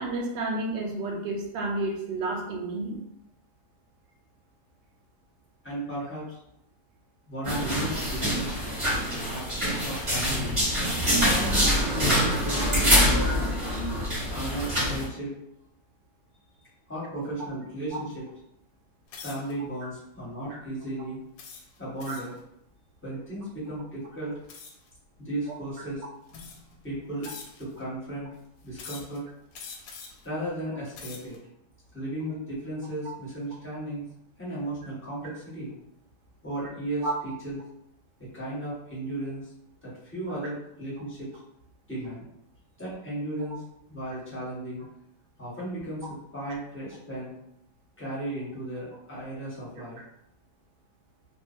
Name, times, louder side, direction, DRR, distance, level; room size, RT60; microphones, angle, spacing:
voice 1, 0.0-3.0 13.2-13.3 20.5-20.6 22.1-22.2 37.0-37.1, right 2 dB, 85° right, 1 dB, 1.3 m, -31 dB
voice 2, 5.6-6.4 7.3-8.5 9.3-10.6 11.2-11.7 11.9-13.6 14.3-15.3 16.9-18.3 19.2-21.2 21.8-22.3 23.0-24.3 25.2-26.0 26.8-27.3 27.6-28.3 28.6-29.2 30.2-31.4 31.9-34.0 34.4-35.7 36.4-37.6 38.3-39.5 39.8-41.3 41.9-42.3 42.8-43.6 43.9-44.8 45.4-46.0 46.3-47.3 48.0-50.0, right 1 dB, 10° left, -9 dB, 1.0 m, -35 dB
sound 1, 7.4-15.0, equal, 20° right, 1.1 m, -25 dB
sound 2, 19.1-19.5 20.2-20.4 21.4-22.4 24.5-24.9 25.7-25.8 26.3-26.8 27.2-27.8 28.7-29.2 29.5-30.3 30.8-31.4, left 5 dB, 85° left, 1.3 m, -44 dB
3.0 x 2.2 x 2.6 m, 0.77 s
omnidirectional pair, 1.9 m